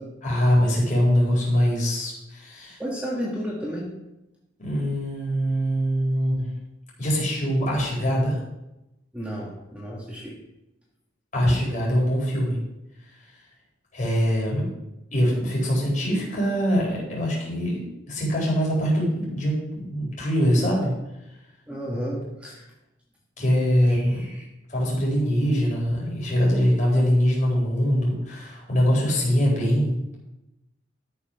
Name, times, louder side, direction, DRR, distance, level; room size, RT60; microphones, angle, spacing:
voice 1, 0.2-2.8 4.6-6.5 7.0-8.4 11.3-12.6 13.9-14.6 15.1-20.9 23.4-24.2 24.7-30.2, equal, 40° left, -4 dB, 4.3 m, -23 dB
voice 2, 2.8-3.9 9.1-10.4 21.7-22.7 23.9-24.4, equal, 5° right, -4 dB, 1.7 m, -32 dB
13.0 x 5.8 x 5.8 m, 0.94 s
head